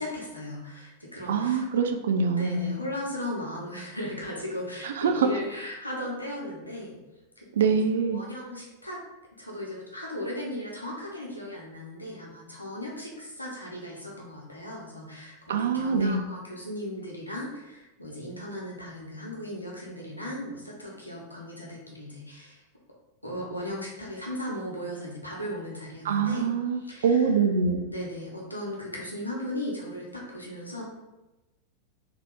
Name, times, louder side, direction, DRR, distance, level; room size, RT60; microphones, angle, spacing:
voice 1, 0.0-1.7 2.4-7.0 7.4-9.0 9.3-22.6 23.2-26.5 26.8-27.3 27.9-30.8, left 1 dB, 85° left, -3 dB, 0.9 m, -37 dB
voice 2, 1.3-2.8 4.8-5.3 7.6-8.2 15.5-16.2 26.0-27.8, right 5 dB, 60° right, 6 dB, 0.4 m, -24 dB
3.4 x 2.9 x 3.6 m, 1.0 s
figure-of-eight pair, 90°, 0 cm